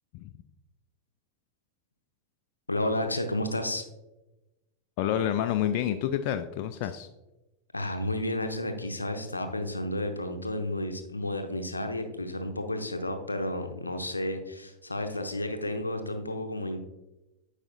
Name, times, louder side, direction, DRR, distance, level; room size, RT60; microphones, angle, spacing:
voice 1, 2.7-3.8 7.7-16.8, left 1 dB, 80° left, 6 dB, 0.6 m, -32 dB
voice 2, 5.0-7.1, left 10 dB, 45° left, 8 dB, 0.3 m, -28 dB
8.7 x 4.8 x 2.6 m, 1.0 s
figure-of-eight pair, 90°, 0 cm